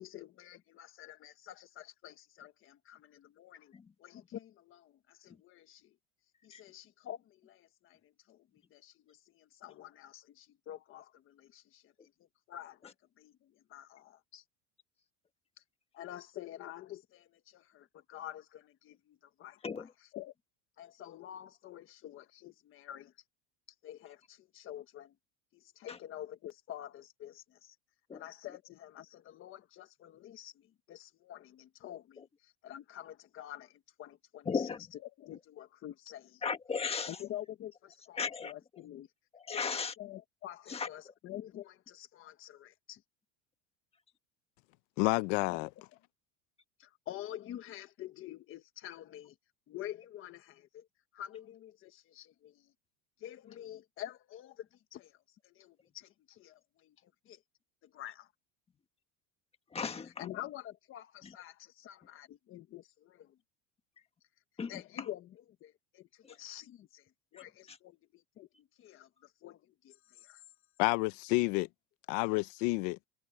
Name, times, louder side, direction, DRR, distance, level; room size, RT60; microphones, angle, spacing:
voice 1, 0.0-3.7 4.0-6.0 6.4-11.9 12.5-14.4 15.9-20.3 20.8-23.1 23.8-25.1 25.5-27.8 28.1-34.7 35.0-36.4 37.1-39.1 39.5-43.0 45.5-45.6 46.8-49.4 49.7-50.9 51.1-52.7 53.2-55.2 55.4-57.4 57.8-58.3 60.2-63.3 64.7-66.1 66.4-68.0 68.4-69.1 69.4-70.4, left 12 dB, 30° left, 1.5 m, -48 dB
voice 2, 34.4-34.8 36.4-37.2 38.2-38.5 39.3-39.9 40.7-40.9 59.7-60.3 64.6-64.8 67.3-67.4 67.7-67.8, left 5 dB, 15° left, 1.5 m, -36 dB
voice 3, 45.0-45.7 70.8-71.7 72.1-73.0, left 23 dB, 65° left, 1.0 m, -29 dB
cardioid pair, 175°, 40 cm